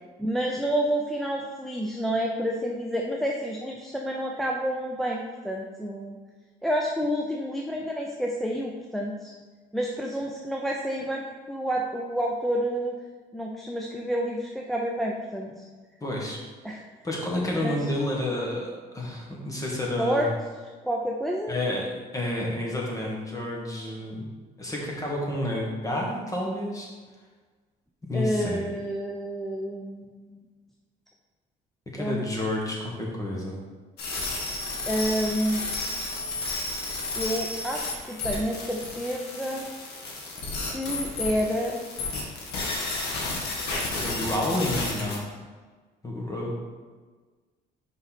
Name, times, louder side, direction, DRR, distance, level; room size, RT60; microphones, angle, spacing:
voice 1, 0.2-6.2 6.6-9.3 9.7-13.0 13.3-15.6 16.6-16.8 17.6-17.7 20.0-20.3 20.8-21.5 28.1-30.5 32.0-32.3 34.9-35.6 37.1-39.6 40.7-41.9, equal, ahead, -1 dB, 0.6 m, -29 dB
voice 2, 16.0-16.4 17.0-20.2 21.5-24.3 24.6-26.9 28.1-28.6 31.9-33.6 44.0-45.3 46.0-46.6, left 1 dB, 20° left, -2 dB, 1.6 m, -30 dB
sound 1, 34.0-45.2, left 2 dB, 75° left, 1.7 m, -32 dB
5.5 x 5.3 x 4.2 m, 1.4 s
cardioid pair, 110°, 17 cm